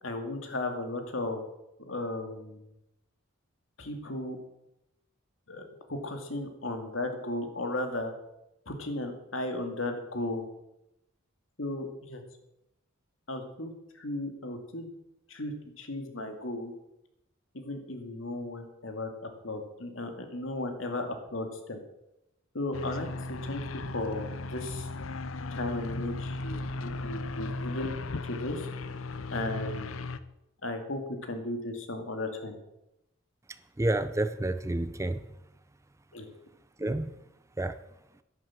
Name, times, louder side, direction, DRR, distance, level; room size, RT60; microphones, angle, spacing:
voice 1, 0.0-1.4 1.8-2.7 3.8-4.4 5.5-8.1 8.7-10.5 11.6-12.2 13.3-14.9 15.3-16.7 17.5-21.8 22.5-23.6 23.9-24.9 25.5-27.9 28.3-28.7 29.3-29.9 30.6-31.0 31.3-32.6 36.1-36.3, left 2 dB, 75° left, 5 dB, 2.3 m, -35 dB
sound 1, 22.7-30.2, left 3 dB, 90° left, 0.8 m, -36 dB
voice 2, 33.8-35.2 36.8-37.2 37.6-37.8, right 1 dB, 15° right, 13 dB, 0.5 m, -29 dB
11.0 x 11.0 x 7.4 m, 0.87 s
head